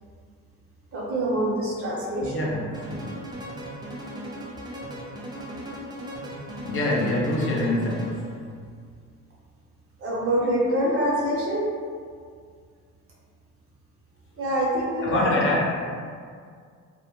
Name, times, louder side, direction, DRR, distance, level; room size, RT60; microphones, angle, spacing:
voice 1, 0.9-2.5 10.0-11.8 14.4-15.4, right 1 dB, 50° right, -5 dB, 0.7 m, -25 dB
voice 2, 2.2-3.1 6.6-8.3 15.0-15.7, left 1 dB, 45° left, -3 dB, 0.5 m, -25 dB
sound 1, 2.7-8.4, equal, 15° right, 0.5 m, -37 dB
2.1 x 2.0 x 2.9 m, 2.1 s
cardioid pair, 90°, 30 cm